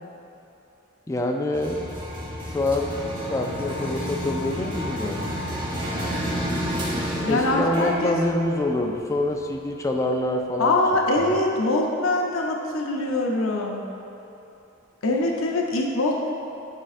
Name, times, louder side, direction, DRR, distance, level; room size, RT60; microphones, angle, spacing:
voice 1, 1.1-1.9 2.5-3.0 3.3-5.3 7.3-10.8, left 1 dB, 15° left, 2 dB, 0.3 m, -26 dB
sound 1, 1.5-9.5, equal, 25° right, 1.0 m, -31 dB
voice 2, 7.2-8.2 10.6-13.8 15.0-16.3, left 2 dB, 80° left, 0 dB, 0.6 m, -23 dB
8.7 x 5.2 x 2.4 m, 2.8 s
head